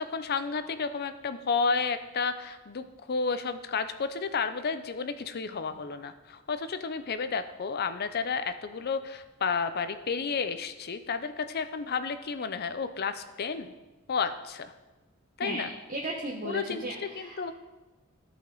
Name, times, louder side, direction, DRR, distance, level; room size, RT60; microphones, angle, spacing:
voice 1, 0.0-13.7 14.1-14.7 15.4-15.7 16.4-16.9 17.1-17.5, left 5 dB, 50° left, 11 dB, 0.5 m, -31 dB
voice 2, 15.4-17.5, right 1 dB, 40° right, -2 dB, 1.0 m, -36 dB
14.0 x 5.2 x 3.9 m, 1.1 s
head